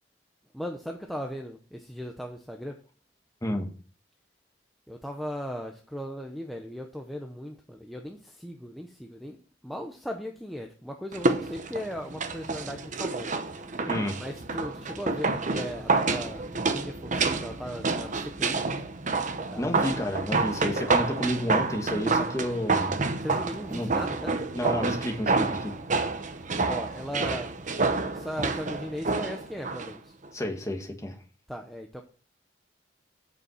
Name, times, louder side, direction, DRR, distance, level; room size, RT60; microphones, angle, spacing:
voice 1, 0.5-2.8 4.9-9.4 9.6-13.6 14.2-18.6 19.5-19.8 23.2-24.5 26.6-27.5 28.1-30.1 31.5-32.0, equal, ahead, 2 dB, 0.8 m, -37 dB
sound 1, 11.1-29.9 30.2-30.3, right 3 dB, 45° right, 0.9 m, -28 dB
voice 2, 13.8-14.2 19.6-23.0 23.7-24.0 24.5-25.8 30.3-31.1, left 1 dB, 15° left, 3 dB, 1.6 m, -30 dB
8.3 x 7.0 x 5.7 m, 0.39 s
head